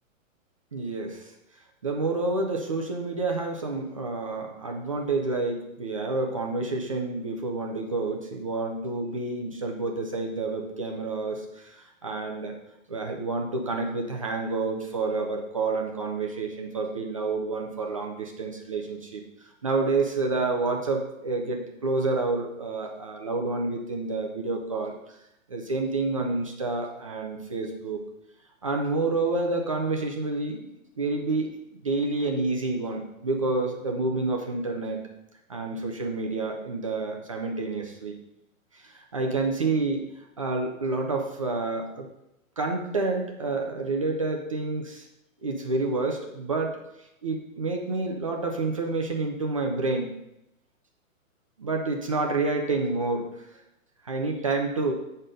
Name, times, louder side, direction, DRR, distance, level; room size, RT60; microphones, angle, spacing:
voice 1, 0.7-1.3 1.8-12.5 12.9-19.2 19.6-25.2 25.5-28.0 28.6-31.5 31.8-35.0 35.5-38.2 38.7-40.1 40.4-42.1 42.6-45.1 45.4-46.8 47.2-50.1 51.6-53.3 54.0-54.9, right 3 dB, 25° right, 2 dB, 0.5 m, -29 dB
9.1 x 4.4 x 5.0 m, 0.86 s
hypercardioid pair, 170°, 41 cm